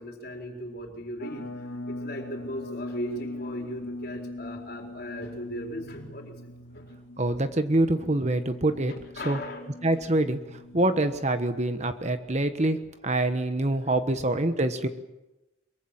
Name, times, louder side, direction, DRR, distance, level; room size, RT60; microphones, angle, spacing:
voice 1, 0.0-1.5 1.9-6.4 6.7-6.9 8.9-9.6 13.8-13.9, equal, 55° left, 2 dB, 4.4 m, -38 dB
sound 1, 1.2-12.1, left 2 dB, 80° left, 2.3 m, -41 dB
voice 2, 7.2-8.9 9.2-9.4 9.8-12.8 13.0-14.9, right 2 dB, 35° right, 9 dB, 1.3 m, -25 dB
23.5 x 23.0 x 7.4 m, 0.98 s
head